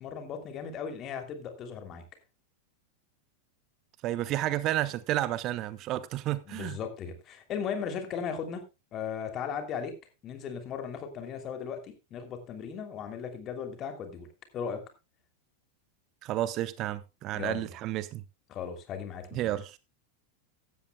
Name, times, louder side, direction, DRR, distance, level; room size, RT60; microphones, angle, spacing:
voice 1, 0.0-2.0 6.5-8.6 8.9-10.0 10.2-14.3 14.5-14.9 17.3-17.7 18.5-19.5, left 7 dB, 30° left, 3.0 m, -37 dB
voice 2, 4.0-6.8 16.2-18.2 19.3-19.8, right 14 dB, 35° right, 0.7 m, -31 dB
16.0 x 13.0 x 2.3 m
figure-of-eight pair, 90°, 0 cm